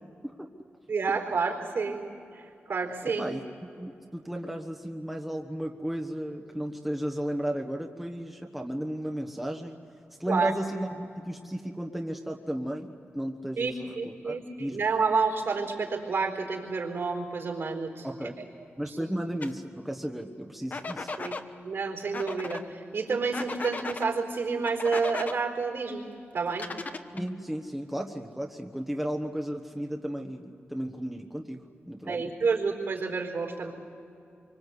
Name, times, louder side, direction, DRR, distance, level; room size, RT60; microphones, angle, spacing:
voice 1, 0.9-2.0 2.3-3.3 10.3-10.5 13.6-18.1 18.9-19.0 21.2-21.4 21.6-26.1 26.3-26.7 32.1-33.7, right 4 dB, 65° right, 3 dB, 4.2 m, -29 dB
voice 2, 3.0-3.4 3.8-9.8 10.2-14.8 18.0-18.3 18.8-21.1 27.1-32.3, equal, 5° right, 2 dB, 1.3 m, -34 dB
sound 1, 19.4-19.5 20.7-21.4 22.1-22.6 23.3-24.1 24.6-25.4 26.5-27.3, left 3 dB, 40° left, 1.2 m, -36 dB
26.5 x 24.5 x 8.2 m, 2.7 s
wide cardioid pair, 140°, 4 cm